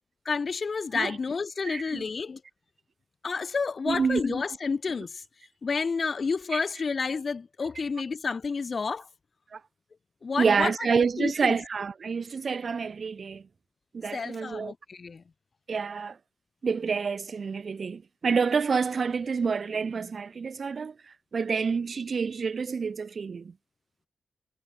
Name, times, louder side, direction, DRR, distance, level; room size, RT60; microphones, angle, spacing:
voice 1, 0.3-2.4 3.2-5.2 5.6-9.1 10.2-10.7 11.2-11.6 14.1-15.2, left 5 dB, 50° left, 6.0 m, -30 dB
voice 2, 1.6-2.0 3.9-4.4 6.5-6.6 9.5-9.6 10.4-13.4 13.9-14.7 15.7-16.2 16.6-23.5, right 5 dB, 60° right, 3.6 m, -28 dB
cardioid pair, 75°, 0 cm